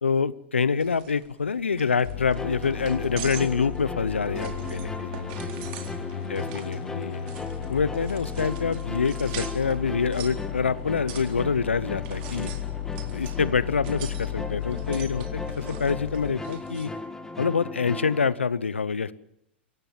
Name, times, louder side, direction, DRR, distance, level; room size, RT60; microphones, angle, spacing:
voice 1, 0.0-5.1 6.3-7.2 7.7-12.5 13.1-16.9 17.4-19.1, left 5 dB, 90° left, 19 dB, 0.8 m, -26 dB
sound 1, 0.8-16.9, right 9 dB, 55° right, 3.9 m, -44 dB
sound 2, 2.0-16.3, left 11 dB, 60° left, 1.0 m, -35 dB
sound 3, 2.3-18.3, left 2 dB, 10° left, 2.4 m, -38 dB
voice 2, 4.3-6.6, right 5 dB, 30° right, 5 dB, 3.4 m, -48 dB
25.0 x 17.0 x 7.5 m, 0.78 s
hypercardioid pair, 100°, 6 cm